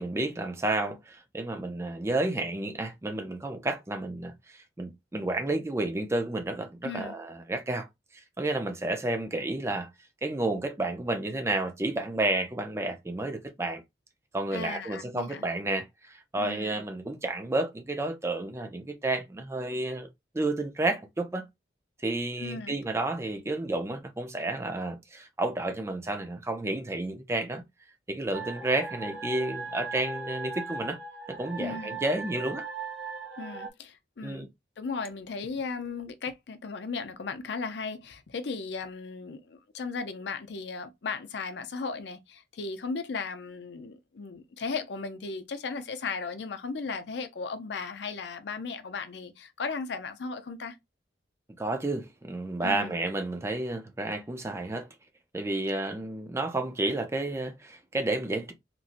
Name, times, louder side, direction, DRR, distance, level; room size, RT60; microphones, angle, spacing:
voice 1, 0.0-4.3 4.8-7.9 8.4-9.9 10.2-13.8 14.3-20.1 20.3-21.4 22.0-27.6 28.1-31.0 31.3-32.6 34.2-34.5 51.6-54.9 55.3-58.5, right 2 dB, 15° right, 0.4 m, -31 dB
voice 2, 6.8-7.2 14.5-15.4 16.4-16.8 22.4-22.8 31.6-32.0 33.4-34.5 34.8-50.8 52.6-52.9, left 4 dB, 65° left, 0.5 m, -36 dB
sound 1, 28.3-33.7, right 3 dB, 65° right, 0.8 m, -38 dB
2.9 x 2.6 x 2.5 m
head